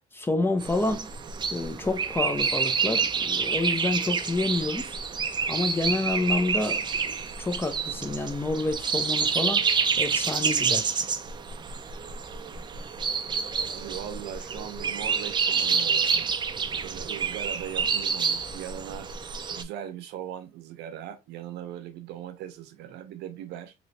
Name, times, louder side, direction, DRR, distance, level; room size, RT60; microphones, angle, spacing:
voice 1, 0.1-1.1 1.5-5.0 5.5-9.6 10.0-11.0, left 2 dB, 15° left, 0.7 m, -28 dB
sound 1, 0.6-19.6, right 6 dB, 25° right, 0.4 m, -28 dB
voice 2, 13.6-16.3 16.7-19.1 19.5-23.7, right 11 dB, 85° right, 0.6 m, -39 dB
3.1 x 3.0 x 2.6 m
cardioid pair, 110°, 17 cm